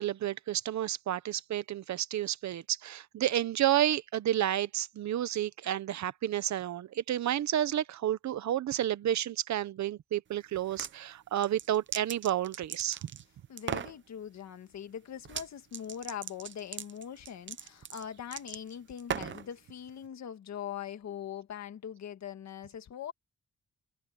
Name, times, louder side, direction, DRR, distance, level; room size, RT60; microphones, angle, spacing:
voice 1, 0.0-13.1, right 11 dB, 70° right, 0.9 m, -31 dB
sound 1, 10.5-10.9 11.4-13.2 13.6-14.0 15.2-15.5 15.7-19.5, right 8 dB, 40° right, 0.7 m, -38 dB
voice 2, 13.5-23.1, left 9 dB, 65° left, 1.8 m, -42 dB
wide cardioid pair, 180°, 29 cm